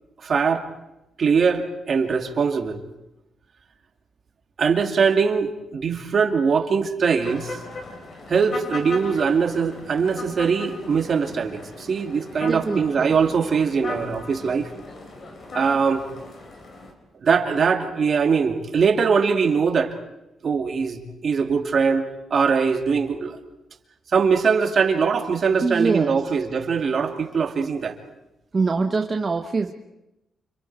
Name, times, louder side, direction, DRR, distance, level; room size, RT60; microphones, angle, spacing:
voice 1, 0.2-0.6 1.2-2.8 4.6-7.6 8.3-14.7 15.5-16.0 17.2-19.9 20.4-23.4 24.1-28.0, right 5 dB, 50° right, 5 dB, 2.3 m, -22 dB
sound 1, 7.2-16.9, left 3 dB, 50° left, 4.5 m, -38 dB
voice 2, 12.4-13.1 25.6-26.2 28.5-29.7, right 4 dB, 30° right, 4 dB, 1.1 m, -24 dB
29.5 x 27.0 x 4.7 m, 0.93 s
cardioid pair, 95°, 0 cm